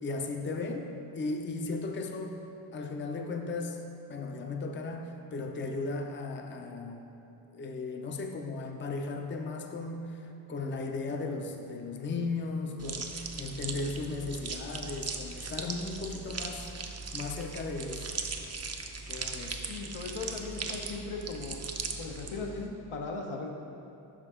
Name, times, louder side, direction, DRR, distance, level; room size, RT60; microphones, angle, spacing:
voice 1, 0.0-2.4 2.7-3.8 4.1-7.1 7.5-16.7 17.1-18.1 19.1-19.7, left 3 dB, 25° left, 4 dB, 0.5 m, -36 dB
sound 1, 12.8-22.7, right 4 dB, 30° right, 0.5 m, -39 dB
voice 2, 19.7-21.6 22.0-23.5, left 4 dB, 80° left, 1 dB, 0.9 m, -38 dB
5.3 x 5.0 x 4.8 m, 2.8 s
cardioid pair, 65°, 49 cm